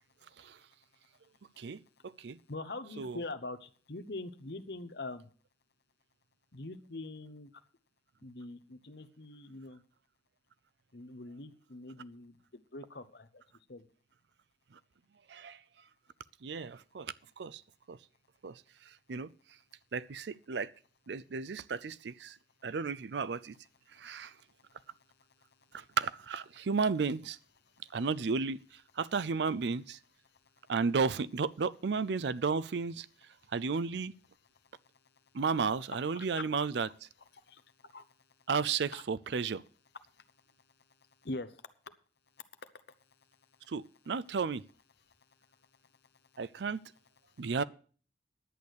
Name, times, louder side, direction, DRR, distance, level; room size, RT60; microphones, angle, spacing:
voice 1, 1.6-2.4 3.0-3.2 15.3-15.6 16.4-17.6 17.9-18.0 18.4-18.6 19.1-19.3 19.9-20.7 21.1-22.4 22.6-23.5 24.0-24.3 25.7-27.4 27.9-28.6 29.0-30.0 30.7-33.1 33.5-34.1 35.3-36.9 38.5-39.6 43.7-44.6 46.4-46.8 47.4-47.6, right 5 dB, 75° right, 0.5 m, -33 dB
voice 2, 2.5-5.3 6.5-7.5 8.2-9.8 10.9-12.4 12.7-13.3 13.7-13.9 36.1-36.7 37.5-37.6 37.9-38.0 38.9-39.0 41.2-41.5, left 2 dB, 65° left, 0.9 m, -43 dB
11.0 x 8.4 x 6.4 m
head